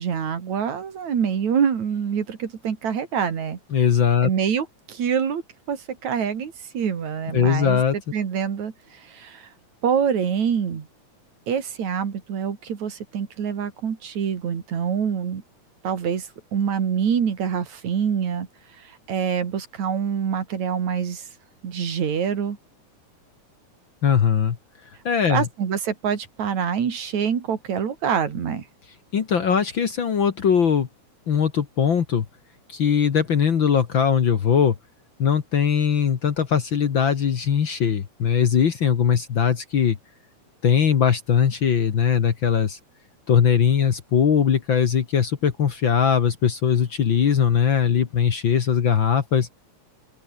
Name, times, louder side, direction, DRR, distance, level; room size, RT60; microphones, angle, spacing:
voice 1, 0.0-3.6 4.2-5.4 5.7-7.8 8.1-9.5 9.8-10.9 11.5-15.4 15.8-18.5 19.1-21.2 21.6-22.6 25.3-28.6, right 7 dB, 70° right, 3.9 m, -25 dB
voice 2, 3.7-4.3 7.3-8.0 24.0-24.6 25.1-25.5 29.1-30.9 31.3-32.3 32.7-34.8 35.2-40.0 40.6-42.8 43.3-49.5, left 7 dB, 50° left, 1.9 m, -20 dB
open air
omnidirectional pair, 3.4 m